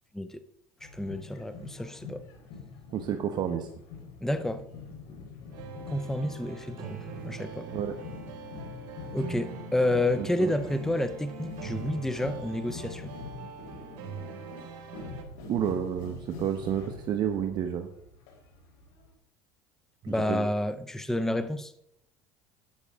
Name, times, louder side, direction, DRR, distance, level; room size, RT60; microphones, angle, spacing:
sound 1, 0.8-19.1, left 5 dB, 85° left, 4.0 m, -45 dB
voice 1, 0.9-2.2 4.2-4.6 5.9-7.0 7.2-7.7 9.1-13.1 20.1-21.7, left 1 dB, 5° left, 0.7 m, -30 dB
voice 2, 2.9-3.7 7.7-8.0 10.2-10.5 15.5-17.9 20.0-20.5, right 9 dB, 45° right, 1.0 m, -30 dB
sound 2, 5.5-15.2, right 6 dB, 65° right, 3.5 m, -43 dB
12.0 x 9.7 x 3.6 m
supercardioid pair, 115°, 10 cm